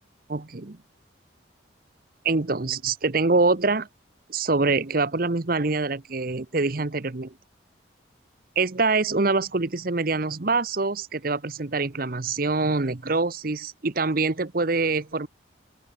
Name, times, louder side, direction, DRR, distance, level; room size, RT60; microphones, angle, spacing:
voice 1, 0.3-0.8 2.2-3.9 4.3-7.3 8.6-15.3, right 3 dB, 45° right, 0.9 m, -25 dB
open air
head